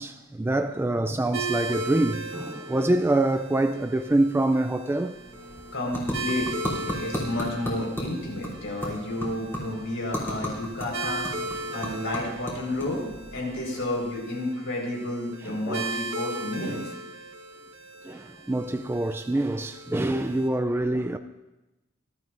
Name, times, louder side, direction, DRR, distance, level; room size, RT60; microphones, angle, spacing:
voice 1, 0.0-5.2 11.5-11.8 15.5-15.9 16.6-16.9 18.0-21.2, right 1 dB, 10° right, 0.3 m, -26 dB
sound 1, 1.3-20.5, right 3 dB, 80° right, 1.3 m, -38 dB
sound 2, 5.0-14.4, equal, 10° left, 3.1 m, -36 dB
voice 2, 5.7-11.3 11.7-16.9, left 1 dB, 75° left, 4.7 m, -31 dB
20.5 x 12.5 x 2.6 m
head